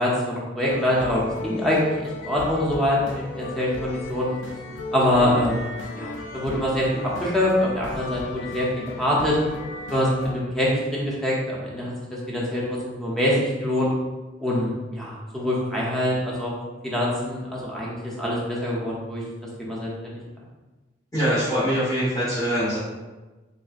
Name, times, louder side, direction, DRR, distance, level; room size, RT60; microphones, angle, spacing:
voice 1, 0.0-4.3 4.9-9.4 9.9-11.9 12.3-13.9 14.4-16.5 16.8-19.2 19.6-20.2, left 1 dB, ahead, -6 dB, 0.6 m, -24 dB
sound 1, 0.6-10.3, left 2 dB, 85° left, 0.4 m, -36 dB
voice 2, 21.1-22.8, equal, 20° left, -13 dB, 1.3 m, -23 dB
3.3 x 2.7 x 2.4 m, 1.2 s
head